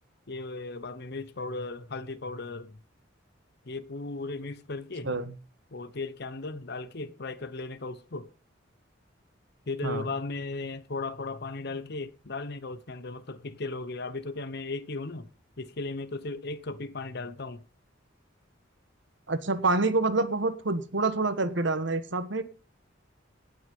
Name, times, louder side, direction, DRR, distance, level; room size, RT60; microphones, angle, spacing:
voice 1, 0.3-2.8 3.6-5.1 5.7-8.3 9.7-15.3 15.6-17.6, left 3 dB, 55° left, 1.0 m, -36 dB
voice 2, 19.3-22.4, right 3 dB, 65° right, 1.4 m, -27 dB
17.5 x 6.2 x 5.4 m
head